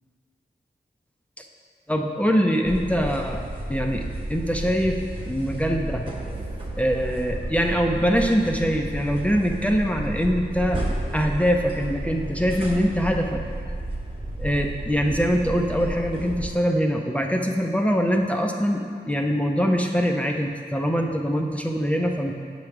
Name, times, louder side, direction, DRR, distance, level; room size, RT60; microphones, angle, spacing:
voice 1, 1.9-3.4 3.7-5.0 5.3-6.0 6.8-10.8 11.1-13.4 14.4-22.3, equal, 5° left, 2 dB, 0.5 m, -23 dB
sound 1, 2.6-16.5, right 1 dB, 30° right, 1.1 m, -32 dB
8.0 x 3.3 x 5.9 m, 2.2 s
wide cardioid pair, 75°, 18 cm